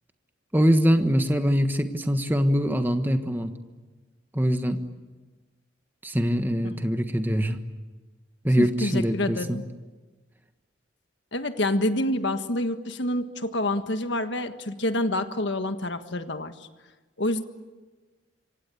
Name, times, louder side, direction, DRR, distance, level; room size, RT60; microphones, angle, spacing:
voice 1, 0.5-3.5 4.3-4.8 6.0-7.6 8.4-9.6, equal, 10° right, 7 dB, 1.4 m, -23 dB
voice 2, 8.6-9.6 11.3-16.5 17.2-17.4, left 1 dB, 65° left, 8 dB, 1.6 m, -27 dB
27.0 x 25.0 x 8.5 m, 1.3 s
head